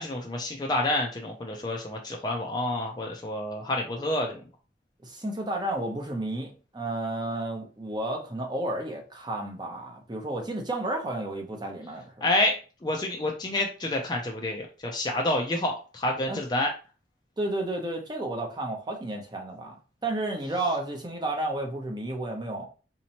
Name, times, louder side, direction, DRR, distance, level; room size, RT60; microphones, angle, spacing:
voice 1, 0.0-4.4 12.2-12.6 12.8-16.7, left 1 dB, 20° left, 0.4 m, -28 dB
voice 2, 5.0-12.1 16.3-16.4 17.4-19.8 20.0-22.6, right 2 dB, 20° right, 0.7 m, -32 dB
4.1 x 2.9 x 2.8 m
head